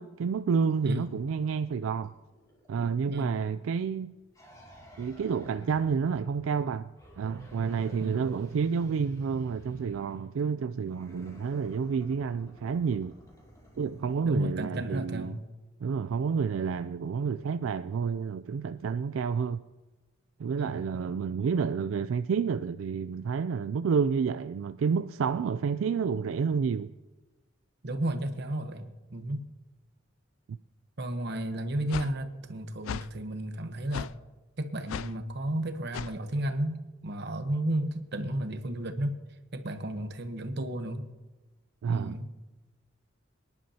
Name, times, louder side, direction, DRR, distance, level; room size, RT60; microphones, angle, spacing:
voice 1, 0.0-2.1 2.7-4.1 5.0-6.9 7.2-13.1 13.8-15.4 15.8-19.6 20.4-26.9 30.5-30.6 41.8-42.2, right 6 dB, 80° right, 0.3 m, -29 dB
sound 1, 0.6-3.4 4.3-6.5 7.0-10.3 10.8-14.2, equal, 20° left, 2.5 m, -54 dB
voice 2, 14.2-15.5 20.6-20.8 27.8-29.4 31.0-34.1 34.6-39.1 39.5-41.1 41.9-42.3, right 1 dB, 55° right, 1.0 m, -33 dB
sound 2, 31.9-32.1 32.8-33.1 33.9-34.1 34.9-35.1 35.9-36.1, left 8 dB, 90° left, 0.3 m, -36 dB
25.0 x 10.5 x 2.8 m
head